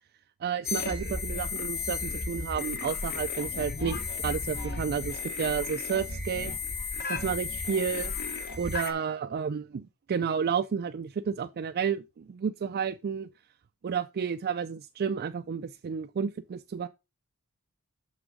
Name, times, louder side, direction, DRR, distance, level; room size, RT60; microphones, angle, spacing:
voice 1, 0.4-6.5 7.1-13.3 13.8-16.9, right 6 dB, 45° right, 0.3 m, -31 dB
sound 1, 0.6-8.9, left 4 dB, 45° left, 1.2 m, -34 dB
6.2 x 5.9 x 4.8 m
head